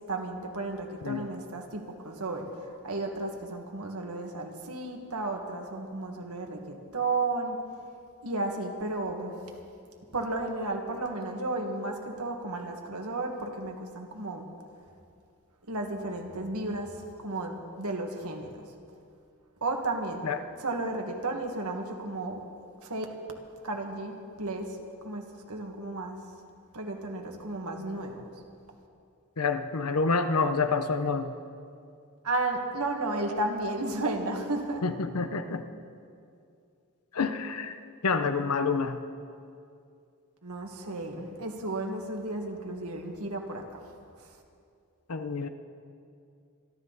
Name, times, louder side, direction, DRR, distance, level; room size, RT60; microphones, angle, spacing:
voice 1, 0.1-7.6 8.2-9.3 10.1-14.5 15.7-18.6 19.6-20.2 20.6-22.4 22.8-23.0 23.6-24.8 25.0-26.2 26.7-28.2 32.2-34.8 40.4-43.6 44.2-44.3, right 2 dB, 75° right, 3 dB, 1.8 m, -33 dB
voice 2, 29.4-31.3 34.8-35.6 37.1-37.8 38.0-39.0 45.1-45.5, left 4 dB, 80° left, 9 dB, 0.9 m, -28 dB
26.5 x 12.5 x 4.1 m, 2.4 s
head